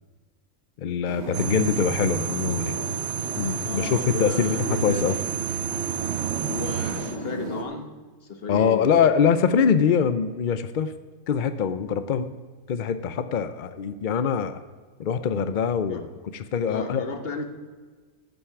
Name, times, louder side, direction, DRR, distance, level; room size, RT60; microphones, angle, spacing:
voice 1, 0.8-2.8 3.4-4.6 4.8-5.2 8.5-10.9 11.3-12.3 12.7-14.6 15.0-16.0 16.3-17.0, left 7 dB, 65° left, 11 dB, 0.4 m, -23 dB
sound 1, 1.1-7.6, right 2 dB, 50° right, 1.8 m, -35 dB
sound 2, 1.3-7.2, right 9 dB, 70° right, 1.1 m, -30 dB
voice 2, 3.6-5.2 6.5-7.9 8.2-9.1 15.8-16.0 16.7-17.4, left 4 dB, 45° left, 6 dB, 1.3 m, -34 dB
13.5 x 8.0 x 5.8 m, 1.4 s
omnidirectional pair, 1.5 m